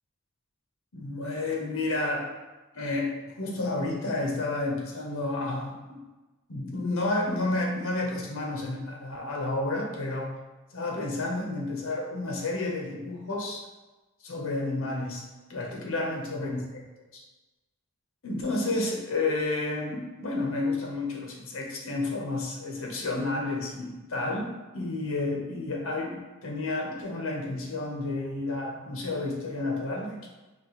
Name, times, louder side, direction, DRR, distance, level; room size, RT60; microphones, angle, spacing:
voice 1, 0.9-2.3 2.7-6.0 6.5-10.3 10.7-13.6 14.2-15.2 15.5-16.8 17.1-17.2 18.2-24.5 24.7-30.3, left 2 dB, 65° left, -1 dB, 0.9 m, -31 dB
4.4 x 3.1 x 3.1 m, 1.1 s
head